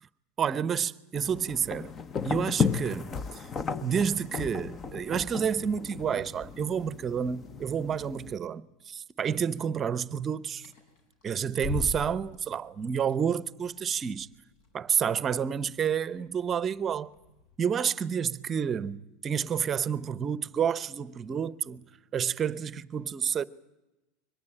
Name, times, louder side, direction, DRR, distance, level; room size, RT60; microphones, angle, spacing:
voice 1, 0.4-1.9 2.2-3.5 3.8-10.7 11.2-14.3 14.7-17.1 17.6-21.8 22.1-23.4, right 7 dB, 25° right, 0.8 m, -29 dB
sound 1, 1.1-8.3, left 6 dB, 25° left, 0.9 m, -34 dB
sound 2, 10.5-17.6, left 4 dB, 65° left, 6.5 m, -43 dB
23.5 x 19.5 x 9.0 m
supercardioid pair, 130°, 0 cm